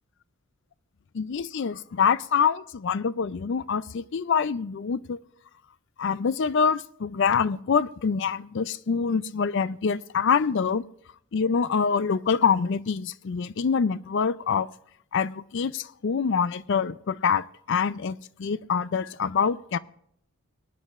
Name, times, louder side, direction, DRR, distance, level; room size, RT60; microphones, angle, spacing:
voice 1, 1.1-5.2 6.0-10.8 11.3-14.7 15.1-19.8, left 6 dB, 55° left, 0.4 m, -25 dB
23.0 x 9.8 x 2.5 m
head